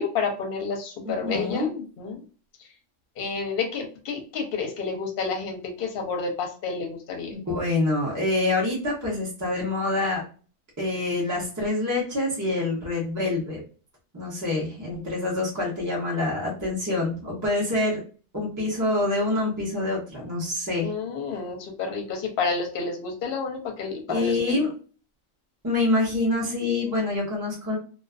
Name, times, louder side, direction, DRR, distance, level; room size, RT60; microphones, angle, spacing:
voice 1, 0.0-2.2 3.2-7.4 20.8-24.6, left 4 dB, 55° left, 3 dB, 0.8 m, -30 dB
voice 2, 1.0-1.7 7.3-10.2 10.8-13.6 14.1-18.0 18.3-20.9 24.1-24.7 25.6-27.8, left 2 dB, 20° right, -4 dB, 0.7 m, -26 dB
2.5 x 2.4 x 2.3 m, 0.38 s
omnidirectional pair, 1.3 m